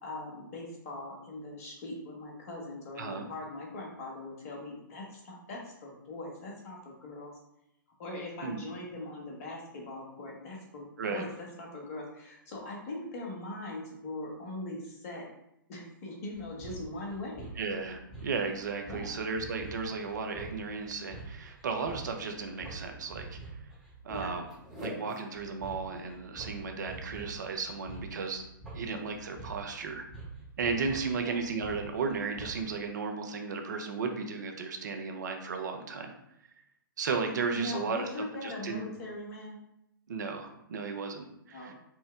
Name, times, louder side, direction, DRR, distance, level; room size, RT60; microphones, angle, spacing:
voice 1, 0.0-7.3 8.0-15.3 15.7-17.4 18.9-19.1 24.1-24.3 31.1-31.4 37.5-39.6 41.5-41.7, left 2 dB, 40° left, -2 dB, 1.1 m, -41 dB
sound 1, 16.3-32.8, right 3 dB, ahead, 1.0 m, -45 dB
voice 2, 17.6-23.4 24.0-24.5 24.8-28.4 28.7-30.0 30.6-36.1 37.0-38.1 38.4-38.8 40.1-41.7, right 4 dB, 55° right, 4 dB, 0.6 m, -34 dB
4.4 x 2.1 x 3.5 m, 0.80 s
figure-of-eight pair, 115°, 11 cm